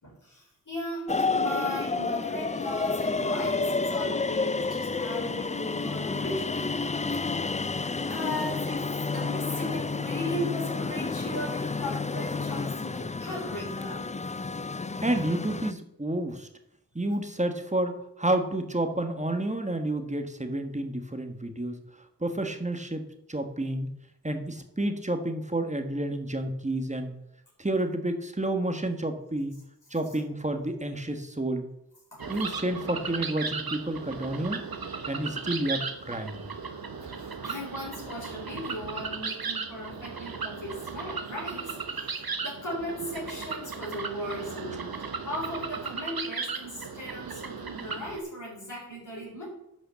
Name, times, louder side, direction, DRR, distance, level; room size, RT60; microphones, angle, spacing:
voice 1, 0.0-7.5 8.1-14.1 32.1-32.2 37.0-49.4, left 1 dB, 60° left, -5 dB, 4.5 m, -37 dB
sound 1, 1.1-15.7, left 3 dB, 20° left, 0.4 m, -30 dB
voice 2, 15.0-16.5 16.9-21.8 22.2-23.9 24.2-27.1 27.6-29.6 29.9-31.7 32.3-34.6 35.1-36.4, right 1 dB, 20° right, 6 dB, 1.4 m, -30 dB
sound 2, 32.2-48.2, right 5 dB, 85° right, 1.1 m, -36 dB
10.5 x 5.6 x 6.9 m, 0.82 s
wide cardioid pair, 50°, 35 cm